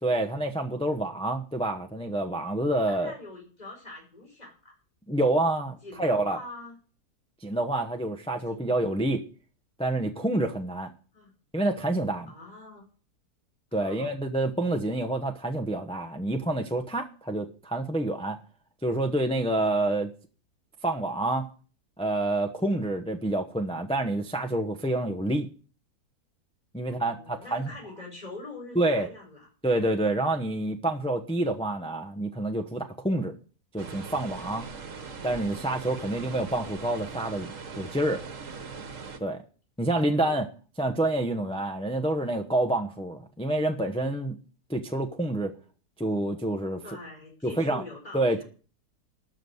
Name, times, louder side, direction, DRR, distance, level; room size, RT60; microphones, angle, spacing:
voice 1, 0.0-3.1 5.1-6.4 7.4-9.2 9.8-10.9 11.5-12.3 13.7-18.4 18.8-20.1 20.8-21.5 22.0-25.5 26.7-27.7 28.7-29.1 29.6-33.3 33.7-34.7 35.2-37.5 37.8-38.2 39.2-39.4 39.8-40.5 40.8-44.4 44.7-45.5 46.0-46.8 47.4-47.8 48.1-48.4, right 1 dB, 5° left, 3 dB, 0.7 m, -28 dB
voice 2, 2.9-4.8 5.8-6.8 8.5-8.7 11.1-11.3 12.3-12.8 13.7-14.1 26.9-29.5 36.0-36.3 39.9-40.4 46.8-48.4, left 2 dB, 25° left, -1 dB, 5.3 m, -44 dB
sound 1, 33.8-39.2, right 5 dB, 55° right, 1.7 m, -40 dB
12.5 x 6.0 x 8.0 m, 0.39 s
omnidirectional pair, 1.7 m